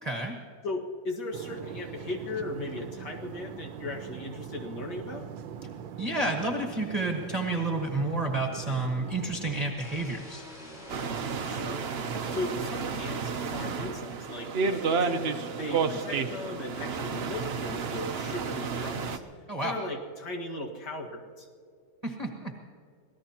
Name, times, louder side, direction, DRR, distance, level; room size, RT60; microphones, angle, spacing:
voice 1, 0.0-0.4 6.0-10.4 19.5-19.8 22.0-22.5, right 2 dB, 20° right, 1 dB, 1.3 m, -30 dB
voice 2, 0.6-5.3 11.4-11.9 12.3-15.1 15.6-19.2 19.6-21.5, left 2 dB, 60° left, 0 dB, 2.3 m, -37 dB
sound 1, 1.3-9.7, right 8 dB, 85° right, 1.5 m, -42 dB
sound 2, 9.6-12.5, left 1 dB, 35° left, 5.7 m, -48 dB
sound 3, 10.9-19.2, right 5 dB, 55° right, 0.6 m, -31 dB
26.0 x 18.0 x 2.9 m, 2.3 s
omnidirectional pair, 2.1 m